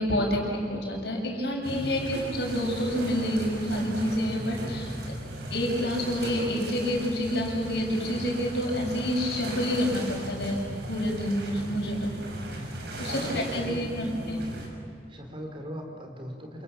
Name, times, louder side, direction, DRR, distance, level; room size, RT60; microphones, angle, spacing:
voice 1, 0.0-4.9 5.5-10.6 10.9-12.1 12.9-14.4, equal, 70° left, 0 dB, 7.5 m, -28 dB
sound 1, 1.6-14.7, right 1 dB, 65° right, 6.4 m, -37 dB
voice 2, 13.1-14.5 15.1-16.6, equal, 30° right, 3 dB, 4.2 m, -40 dB
28.5 x 28.0 x 7.5 m, 2.6 s
head